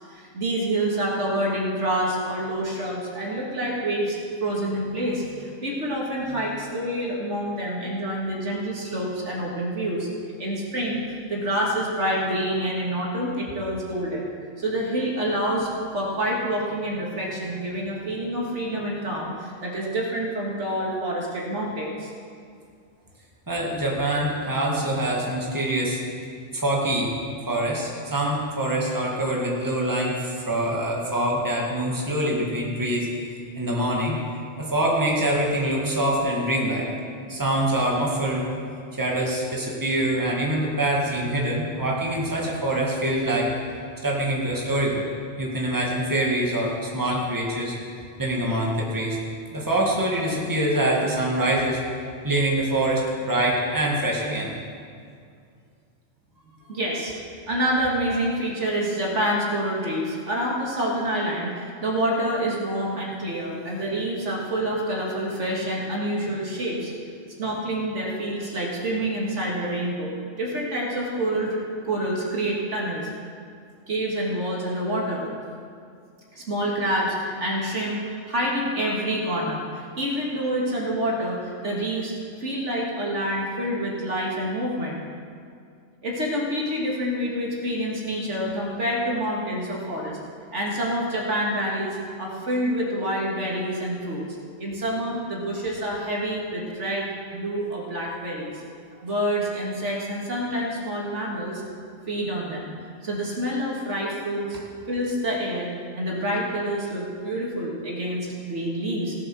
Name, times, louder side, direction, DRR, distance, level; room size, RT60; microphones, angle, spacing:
voice 1, 0.1-10.1 10.4-14.3 14.6-22.1 56.7-57.1 57.5-66.9 67.4-71.6 71.8-73.1 73.9-75.2 76.3-78.0 78.3-82.1 82.4-85.0 86.0-90.2 90.5-94.2 94.6-98.6 99.0-101.6 102.1-102.7 103.0-104.6 104.9-109.2, right 1 dB, 70° right, -3 dB, 2.4 m, -27 dB
voice 2, 23.5-26.0 26.5-27.1 27.5-33.1 33.6-34.2 34.6-36.9 37.3-38.5 38.9-43.5 44.0-45.0 45.4-47.7 48.2-49.2 49.5-51.8 52.2-54.5, right 1 dB, 15° right, -3 dB, 2.0 m, -24 dB
17.5 x 7.6 x 6.3 m, 2.3 s
omnidirectional pair, 1.3 m